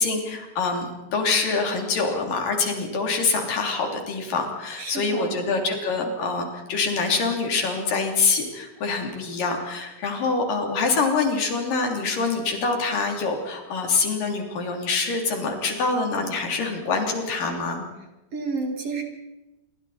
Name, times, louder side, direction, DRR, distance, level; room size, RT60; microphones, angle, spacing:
voice 1, 0.0-17.8, left 4 dB, 70° left, 3 dB, 4.8 m, -25 dB
voice 2, 4.8-5.4 18.3-19.0, right 4 dB, 45° right, 3 dB, 2.9 m, -30 dB
28.0 x 23.5 x 4.3 m, 1.0 s
omnidirectional pair, 4.1 m